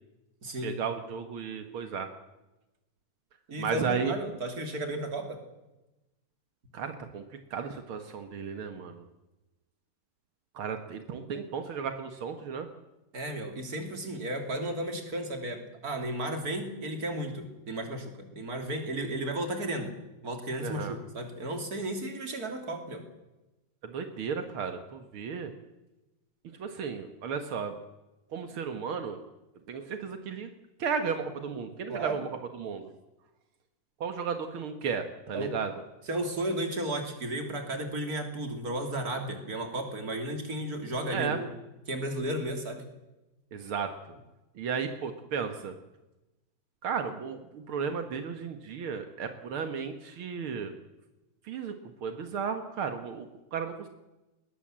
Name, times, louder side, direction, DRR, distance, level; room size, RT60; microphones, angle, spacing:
voice 1, 0.6-2.1 3.6-4.1 6.7-7.2 7.5-9.0 10.5-12.7 20.6-20.9 23.8-25.5 26.6-27.7 28.3-29.2 29.7-30.5 30.8-32.3 32.6-32.9 34.0-35.7 41.1-41.4 43.5-43.9 44.6-45.7 46.8-50.7 51.4-51.7 52.0-53.9, right 6 dB, 70° right, 7 dB, 1.3 m, -34 dB
voice 2, 3.5-5.4 13.1-20.0 20.2-23.0 31.9-32.2 35.3-35.6 36.1-41.5 41.9-42.8, right 1 dB, 25° right, 5 dB, 3.0 m, -34 dB
21.0 x 20.0 x 7.6 m, 1.0 s
omnidirectional pair, 4.6 m